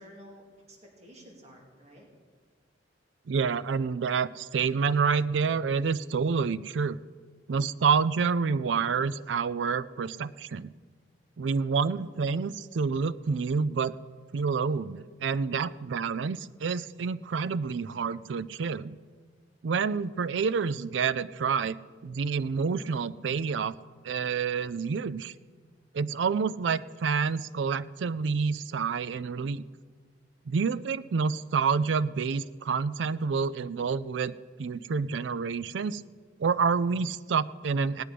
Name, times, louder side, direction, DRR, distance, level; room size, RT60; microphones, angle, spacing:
voice 1, 0.0-2.1, equal, 40° right, -1 dB, 2.4 m, -51 dB
voice 2, 3.3-7.0 7.5-10.7 11.4-13.9 14.3-19.0 19.6-21.8 22.0-23.7 24.0-25.3 25.9-29.6 30.5-34.3 34.6-36.0 36.4-38.0, right 5 dB, 85° right, 16 dB, 0.4 m, -28 dB
18.0 x 9.5 x 5.0 m, 1.5 s
head